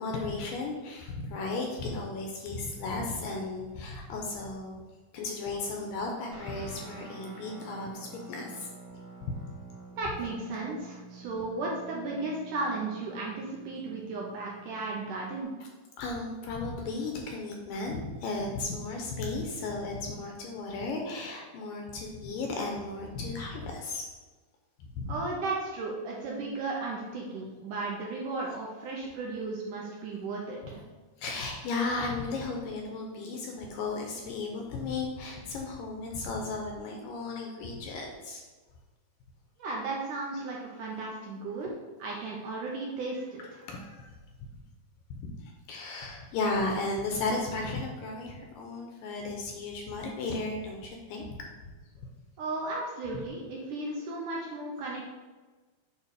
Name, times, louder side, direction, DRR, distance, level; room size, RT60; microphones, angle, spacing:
voice 1, 0.0-4.8 5.1-8.7 9.3-9.4 16.0-24.0 24.8-25.1 31.2-38.4 43.4-44.1 45.1-51.3 53.1-53.2, left 3 dB, 75° left, 1 dB, 2.2 m, -35 dB
Guitar, 6.3-15.4, right 4 dB, 40° right, 2.4 m, -49 dB
voice 2, 10.0-15.5 25.1-30.8 39.6-41.7 42.0-43.6 52.4-55.0, right 3 dB, 70° right, -3 dB, 2.0 m, -35 dB
8.5 x 3.9 x 4.9 m, 1.3 s
omnidirectional pair, 4.5 m